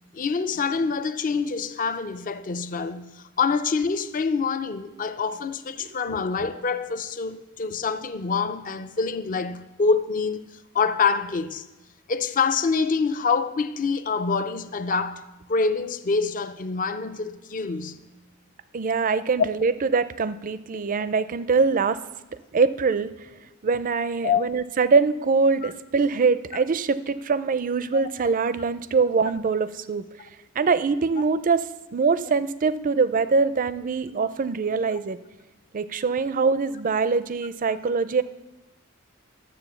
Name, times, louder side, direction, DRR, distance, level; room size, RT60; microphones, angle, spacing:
voice 1, 0.1-10.5 10.7-11.6 12.1-15.2 15.5-18.0 24.2-24.5 25.6-25.7 31.1-31.2 34.2-34.3, left 5 dB, 40° left, 0.5 m, -26 dB
voice 2, 18.7-22.0 22.5-23.1 23.6-30.0 30.6-35.2 35.7-38.2, right 4 dB, 40° right, 0.4 m, -23 dB
12.0 x 7.5 x 6.9 m
head